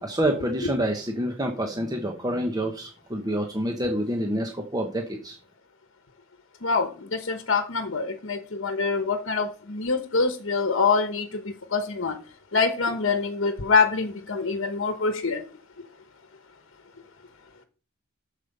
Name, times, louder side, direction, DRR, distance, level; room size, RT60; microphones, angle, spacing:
voice 1, 0.0-5.4, right 1 dB, 20° right, 3 dB, 1.0 m, -27 dB
voice 2, 6.6-12.2 12.5-15.4, left 4 dB, 60° left, 7 dB, 1.1 m, -25 dB
8.2 x 6.7 x 5.4 m, 0.37 s
head